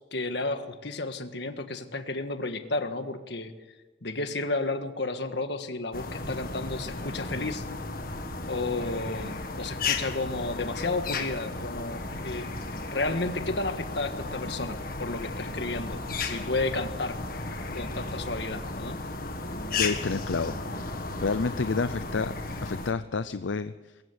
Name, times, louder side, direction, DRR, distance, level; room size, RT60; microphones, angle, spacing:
voice 1, 0.1-3.5 4.0-7.6 8.5-12.5 12.9-17.2 17.7-19.0, left 2 dB, 65° left, 8 dB, 1.6 m, -32 dB
sound 1, 5.9-22.9, left 3 dB, 50° left, 1.8 m, -34 dB
voice 2, 19.8-20.6 21.2-22.3 22.6-23.7, left 4 dB, 80° left, 12 dB, 0.6 m, -29 dB
23.5 x 14.5 x 8.2 m, 1.2 s
head